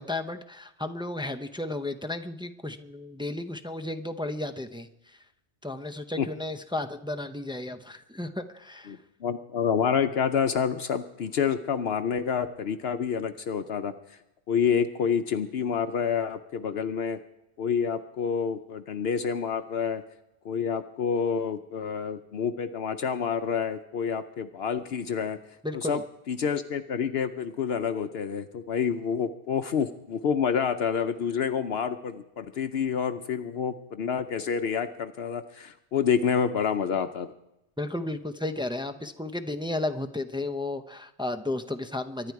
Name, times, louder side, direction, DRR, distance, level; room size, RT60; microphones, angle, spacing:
voice 1, 0.0-5.2 5.6-9.0 25.6-26.0 37.8-42.3, left 2 dB, 5° right, 6 dB, 0.5 m, -33 dB
voice 2, 8.9-13.9 14.5-17.2 17.6-20.0 20.4-25.4 25.7-26.0 26.3-37.3, left 7 dB, 65° left, 9 dB, 0.9 m, -28 dB
24.0 x 11.0 x 4.7 m, 0.90 s
omnidirectional pair, 1.1 m